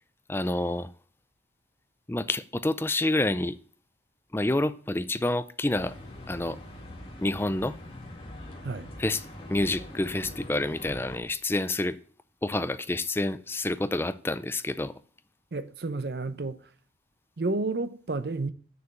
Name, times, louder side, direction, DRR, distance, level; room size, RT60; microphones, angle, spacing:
voice 1, 0.3-0.9 2.1-3.6 4.3-5.9 6.3-6.6 7.2-7.8 9.0-9.2 9.5-12.0 12.4-14.9, left 2 dB, 15° left, 0.4 m, -28 dB
sound 1, 5.7-11.2, left 1 dB, 30° left, 2.0 m, -43 dB
voice 2, 15.5-16.7 17.4-18.5, right 3 dB, 60° right, 0.7 m, -31 dB
6.8 x 6.8 x 7.7 m
head